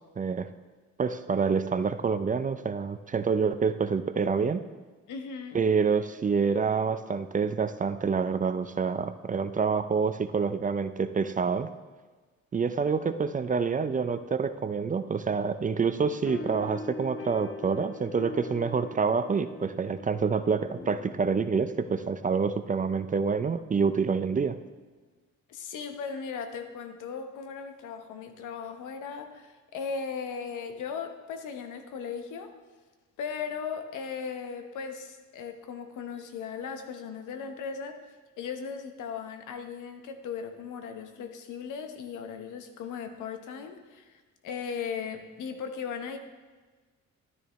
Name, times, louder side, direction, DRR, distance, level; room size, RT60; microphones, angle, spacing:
voice 1, 0.2-0.5 1.0-4.6 5.5-11.7 12.5-24.6, right 5 dB, 25° right, 11 dB, 0.4 m, -27 dB
voice 2, 5.1-5.6 25.5-32.5 33.2-38.0 38.4-46.2, left 6 dB, 85° left, 6 dB, 1.1 m, -37 dB
sound 1, 16.3-23.1, left 4 dB, 45° left, 0.7 m, -43 dB
12.5 x 9.7 x 3.1 m, 1.3 s
cardioid pair, 90°, 30 cm